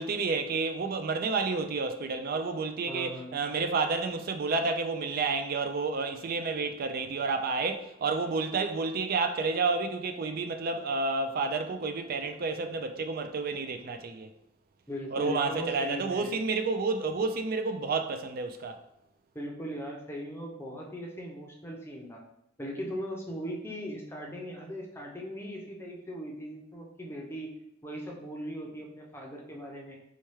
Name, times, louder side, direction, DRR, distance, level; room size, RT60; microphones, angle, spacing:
voice 1, 0.0-14.3 15.1-18.8, right 4 dB, 50° right, 0.4 m, -30 dB
voice 2, 2.9-3.4 14.9-16.3 19.3-22.2 22.6-27.5 27.8-30.0, equal, 15° left, 0.6 m, -39 dB
4.3 x 2.3 x 3.1 m
head